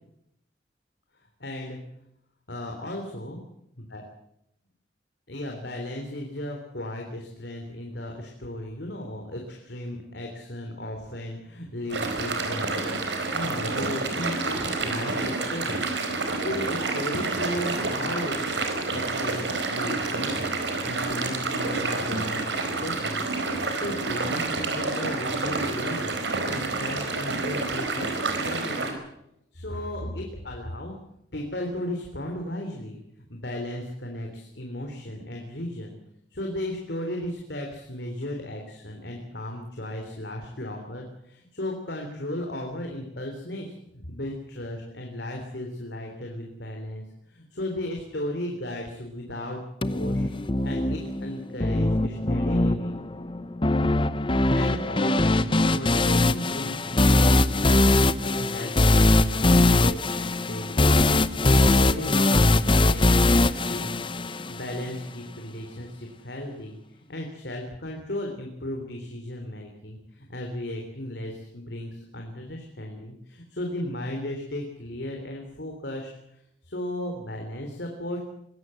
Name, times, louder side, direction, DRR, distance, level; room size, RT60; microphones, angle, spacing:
voice 1, 1.1-1.8 2.5-3.4 3.9-4.0 5.3-15.8 16.3-18.5 18.9-20.5 20.8-23.2 23.5-26.2 26.5-29.0 29.5-30.9 31.3-36.0 36.3-49.6 49.9-50.3 50.6-53.1 54.5-78.3, left 1 dB, 65° left, 2 dB, 3.5 m, -35 dB
sound 1, 11.9-28.9, right 3 dB, 75° right, 4.5 m, -28 dB
sound 2, 49.8-64.8, left 2 dB, 25° left, 0.8 m, -21 dB
23.0 x 17.0 x 7.8 m, 0.79 s
head